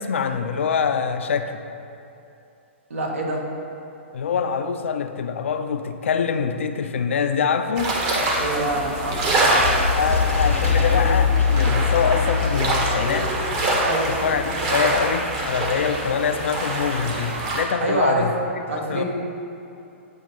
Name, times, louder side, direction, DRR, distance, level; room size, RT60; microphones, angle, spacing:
voice 1, 0.0-1.6 4.1-7.9 9.9-13.4 14.1-18.3 18.7-19.0, left 6 dB, 70° left, 8 dB, 0.4 m, -24 dB
voice 2, 2.9-3.4 8.4-9.8 13.8-14.1 17.8-18.3 18.7-19.0, right 2 dB, 70° right, -1 dB, 1.1 m, -26 dB
sound 1, 7.8-17.6, right 1 dB, 35° right, 1.1 m, -25 dB
sound 2, 8.7-13.9, left 6 dB, 90° left, 0.9 m, -23 dB
8.4 x 2.8 x 5.3 m, 2.7 s
figure-of-eight pair, 115°, 7 cm